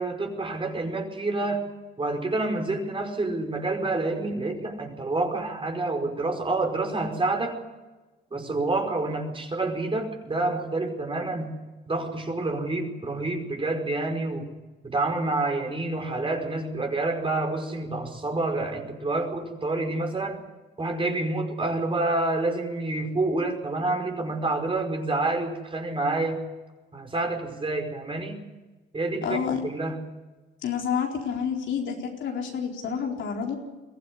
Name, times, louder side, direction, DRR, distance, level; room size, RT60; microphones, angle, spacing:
voice 1, 0.0-1.6 2.0-7.6 8.3-11.6 11.9-14.5 14.9-20.4 20.8-26.4 26.9-28.4 28.9-30.0, right 2 dB, 25° right, 3 dB, 5.2 m, -28 dB
voice 2, 29.2-29.6 30.6-33.6, left 7 dB, 70° left, 1 dB, 4.4 m, -29 dB
22.5 x 15.5 x 10.0 m, 1.2 s
cardioid pair, 90°, 20 cm